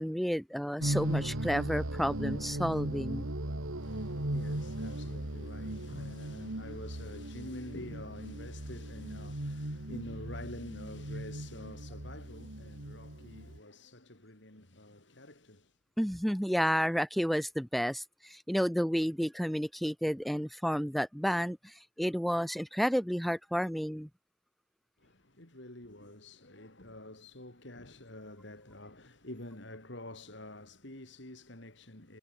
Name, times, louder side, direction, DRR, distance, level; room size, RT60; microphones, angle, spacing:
voice 1, 0.0-3.3 16.0-24.1, equal, ahead, 0.4 m, -31 dB
sound 1, 0.8-13.6, right 1 dB, 85° right, 2.4 m, -37 dB
voice 2, 3.8-15.7 25.0-32.2, left 1 dB, 60° left, 3.5 m, -47 dB
head